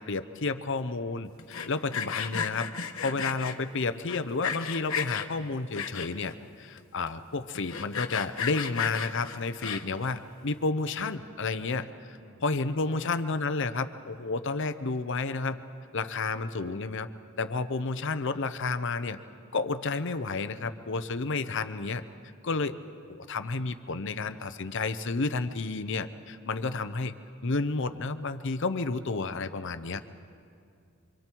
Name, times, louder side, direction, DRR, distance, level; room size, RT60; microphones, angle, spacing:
voice 1, 0.0-2.7 3.0-15.6 15.9-17.1 17.4-19.2 19.5-22.0 22.4-22.8 23.1-27.1 27.4-30.0, left 3 dB, 60° left, 11 dB, 0.8 m, -31 dB
Sawing, 1.4-3.5 4.1-5.3 5.7-6.3 6.8-6.9 7.1-7.2 7.5-10.0, left 7 dB, 80° left, 1.2 m, -34 dB
voice 2, 12.2-13.1 20.7-21.6 29.9-30.0, right 1 dB, 65° right, 2 dB, 2.2 m, -53 dB
27.5 x 25.0 x 4.6 m, 2.3 s
head